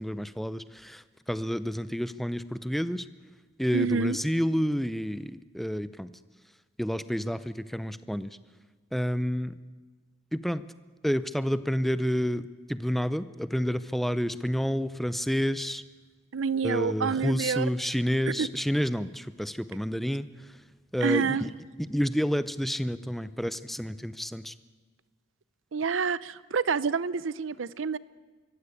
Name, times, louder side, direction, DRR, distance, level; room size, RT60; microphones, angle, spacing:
voice 1, 0.0-3.0 3.6-6.1 6.8-8.4 8.9-9.6 10.3-10.6 11.0-12.4 12.7-15.8 16.6-20.3 20.9-21.5 21.9-24.5, equal, ahead, 14 dB, 0.5 m, -29 dB
voice 2, 3.7-4.2 16.3-17.7 18.4-18.5 21.0-21.5 25.7-28.0, right 5 dB, 80° right, 18 dB, 0.6 m, -28 dB
24.0 x 15.0 x 8.5 m, 1.5 s
head